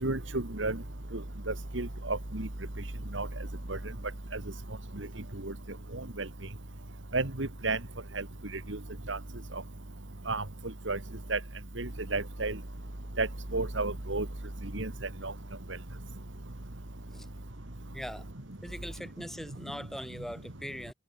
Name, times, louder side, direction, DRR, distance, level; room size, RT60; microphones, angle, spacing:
voice 1, 0.0-0.8 1.5-2.5 3.1-3.3 3.7-3.8 4.3-4.4 5.0-5.1 5.4-5.5 5.9-6.3 7.1-7.8 8.1-8.2 8.7-8.8 9.1-9.2 10.3-10.4 10.9-11.0 11.3-11.4 11.8-12.6 13.2-13.3 13.5-14.3 14.7-14.9 15.2-15.3, right 3 dB, 75° right, 2.3 m, -31 dB
voice 2, 17.9-18.3 18.6-20.9, equal, ahead, 7.6 m, -41 dB
head